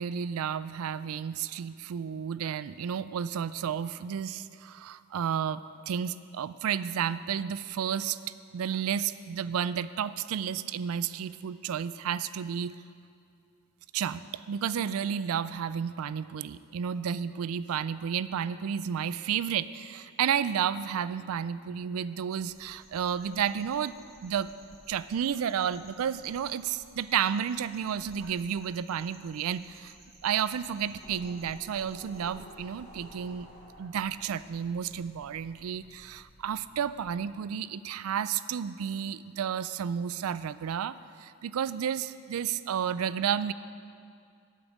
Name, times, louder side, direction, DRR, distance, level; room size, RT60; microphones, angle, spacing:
voice 1, 0.0-8.2 8.5-12.7 13.9-24.0 24.2-24.5 24.9-29.9 30.2-33.5 33.8-43.5, right 8 dB, 80° right, 15 dB, 0.3 m, -32 dB
sound 1, 22.3-32.3, right 2 dB, 30° right, 1.2 m, -58 dB
sound 2, 30.5-37.3, equal, 30° left, 2.3 m, -53 dB
8.7 x 7.2 x 8.1 m, 2.3 s
head